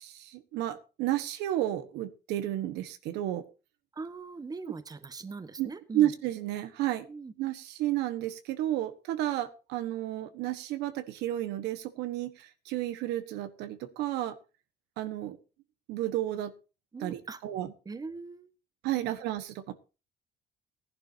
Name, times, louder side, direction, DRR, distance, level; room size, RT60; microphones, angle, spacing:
voice 1, 0.0-3.4 5.6-5.7 5.9-7.0 7.4-14.3 15.0-15.4 15.9-16.5 17.0-17.7 18.8-19.7, right 13 dB, 90° right, 11 dB, 1.3 m, -32 dB
voice 2, 3.9-6.1 7.1-7.3 16.9-17.4 17.8-18.5 19.0-19.1, right 4 dB, 20° right, 12 dB, 1.2 m, -41 dB
17.0 x 11.0 x 2.7 m, 0.31 s
cardioid pair, 110°, 17 cm